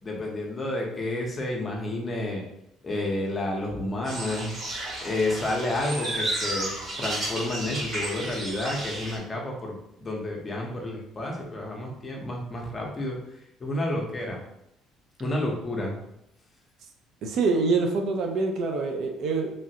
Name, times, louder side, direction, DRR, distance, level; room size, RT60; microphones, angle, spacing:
voice 1, 0.0-2.4 2.8-4.5 5.0-13.2 13.6-14.4 15.2-15.9, left 1 dB, 20° left, -1 dB, 0.7 m, -30 dB
sound 1, 4.0-9.2, right 1 dB, 35° right, 1.2 m, -32 dB
voice 2, 17.2-19.5, right 4 dB, 60° right, 3 dB, 0.4 m, -25 dB
3.1 x 2.4 x 2.8 m, 0.77 s
cardioid pair, 145°, 0 cm